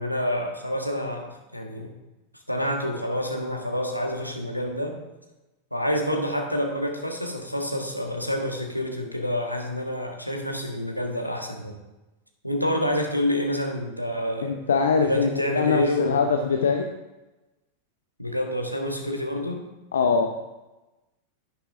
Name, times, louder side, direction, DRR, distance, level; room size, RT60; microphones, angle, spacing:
voice 1, 0.0-1.9 2.5-5.0 5.7-11.7 12.4-14.5 15.0-16.2 18.2-19.6, left 1 dB, 90° left, 2 dB, 1.6 m, -28 dB
voice 2, 14.4-16.9 19.9-20.3, left 5 dB, 65° left, 5 dB, 0.7 m, -23 dB
10.5 x 10.0 x 3.7 m, 1.0 s
figure-of-eight pair, 90°, 0 cm